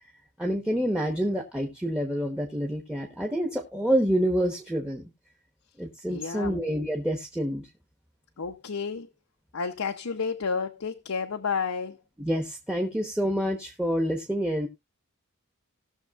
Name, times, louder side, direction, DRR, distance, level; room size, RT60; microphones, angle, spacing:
voice 1, 0.4-5.1 5.8-7.7 12.2-14.7, equal, 5° right, 1.1 m, -27 dB
voice 2, 6.1-6.6 8.4-9.1 9.5-12.0, left 5 dB, 85° left, 0.8 m, -31 dB
18.5 x 6.5 x 2.4 m
head